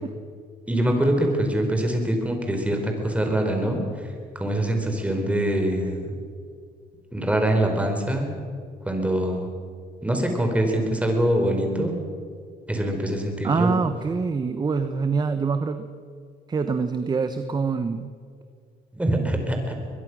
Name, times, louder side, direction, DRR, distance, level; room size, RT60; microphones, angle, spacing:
voice 1, 0.7-3.8 4.3-6.1 7.1-8.3 8.8-9.5 10.0-12.0 12.7-13.7 18.9-19.8, right 1 dB, 10° right, 3 dB, 4.5 m, -24 dB
voice 2, 13.4-15.9 16.5-18.1, right 5 dB, 25° right, 9 dB, 1.1 m, -25 dB
23.0 x 21.5 x 6.3 m, 2.2 s
cardioid pair, 110°, 17 cm